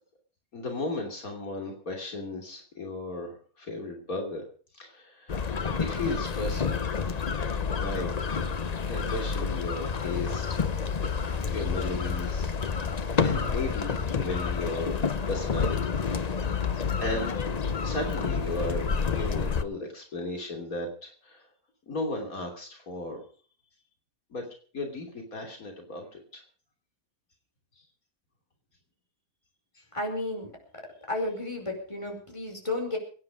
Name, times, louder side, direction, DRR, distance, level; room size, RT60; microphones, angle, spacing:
voice 1, 0.5-4.4 4.7-7.2 7.8-8.3 8.9-10.6 11.1-12.5 13.1-15.0 15.3-15.9 16.7-17.4 17.8-21.5 21.9-23.2 24.3-24.5 24.7-26.4 29.8-29.9, left 2 dB, 80° left, 2 dB, 3.4 m, -35 dB
sound 1, 5.3-19.6, left 5 dB, 35° left, 0.7 m, -29 dB
voice 2, 29.9-30.5 31.1-33.0, left 2 dB, 20° left, 2 dB, 5.1 m, -32 dB
23.5 x 9.8 x 5.0 m, 0.42 s
omnidirectional pair, 1.5 m